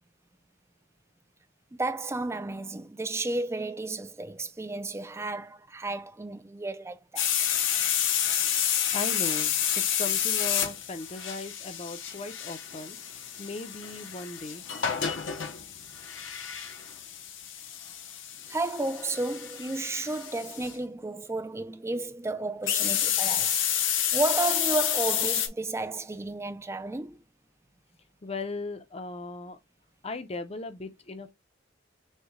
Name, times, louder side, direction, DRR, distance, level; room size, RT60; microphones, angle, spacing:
voice 1, 1.7-7.3 18.5-23.6 24.1-27.2, right 2 dB, 15° right, 0.4 m, -32 dB
sound 1, 7.2-20.7 22.7-25.5, left 10 dB, 70° left, 0.8 m, -29 dB
voice 2, 8.9-14.6 28.2-29.6 30.0-31.3, left 3 dB, 30° left, 0.6 m, -38 dB
6.4 x 2.3 x 3.0 m
head